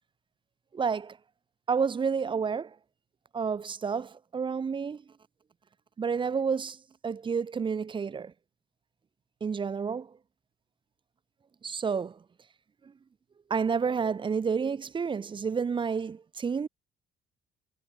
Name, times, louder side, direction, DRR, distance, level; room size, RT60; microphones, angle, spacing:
voice 1, 0.7-1.2 1.7-2.8 3.3-5.0 6.0-8.3 9.4-10.1 11.6-12.2 12.8-12.9 13.5-16.7, right 6 dB, 30° right, 1.1 m, -30 dB
cardioid pair, 110°, 17 cm